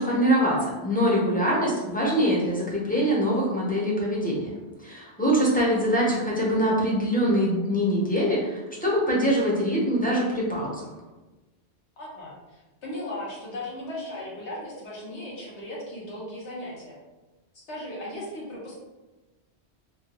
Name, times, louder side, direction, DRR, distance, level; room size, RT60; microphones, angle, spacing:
voice 1, 0.0-4.5 4.8-10.9, equal, 10° left, -6 dB, 0.7 m, -24 dB
voice 2, 12.0-17.0 17.7-18.8, left 1 dB, 90° left, -5 dB, 1.4 m, -37 dB
4.2 x 2.2 x 2.9 m, 1.1 s
omnidirectional pair, 1.1 m